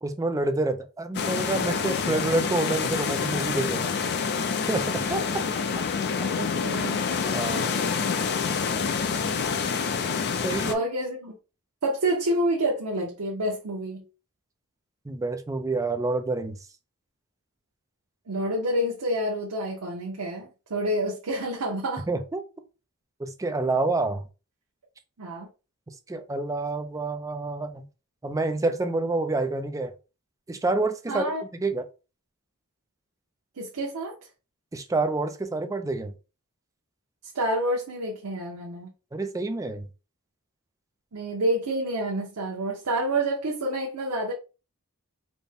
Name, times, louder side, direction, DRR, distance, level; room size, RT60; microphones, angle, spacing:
voice 1, 0.0-4.0 4.7-5.4 7.3-7.7 10.4-10.8 15.1-16.6 22.1-22.4 23.2-24.3 26.1-27.9 28.2-29.9 30.5-31.2 31.5-31.9 34.7-36.1 39.1-39.9, right 2 dB, 15° right, 0.4 m, -28 dB
sound 1, 1.1-10.7, left 5 dB, 50° left, 0.5 m, -27 dB
voice 2, 6.3-7.0 10.7-11.4 11.8-14.0 18.3-22.0 25.2-25.5 31.1-31.4 33.6-34.2 37.3-38.9 41.1-44.3, right 1 dB, 90° right, 0.8 m, -28 dB
4.1 x 2.1 x 3.4 m
head